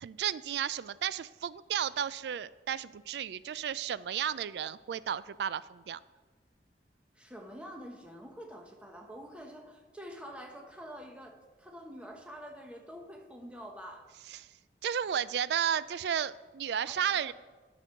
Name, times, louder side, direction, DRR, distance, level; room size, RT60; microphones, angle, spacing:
voice 1, 0.0-6.0 14.3-14.5 14.8-17.3, right 9 dB, 65° right, 17 dB, 0.3 m, -33 dB
voice 2, 7.1-14.1 16.8-17.3, equal, 5° right, 2 dB, 1.1 m, -47 dB
11.5 x 6.2 x 5.8 m, 1.3 s
head